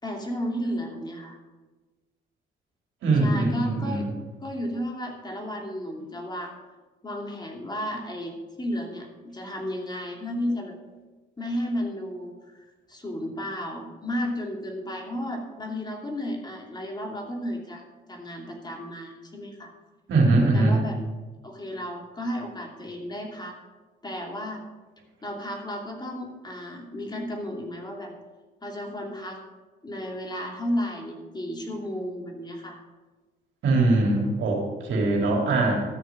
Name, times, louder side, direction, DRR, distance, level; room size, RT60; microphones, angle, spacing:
voice 1, 0.0-1.4 3.2-4.1 4.4-6.5 7.0-10.7 11.4-12.6 12.9-17.8 18.1-19.7 20.5-21.0 21.4-23.6 24.0-24.6 25.2-28.1 28.6-29.4 29.8-32.8, equal, 20° left, 1 dB, 2.8 m, -33 dB
voice 2, 3.0-4.1 20.1-20.8 33.6-35.8, right 2 dB, 75° right, 0 dB, 3.3 m, -22 dB
13.5 x 6.6 x 7.3 m, 1.2 s
cardioid pair, 90°, 20 cm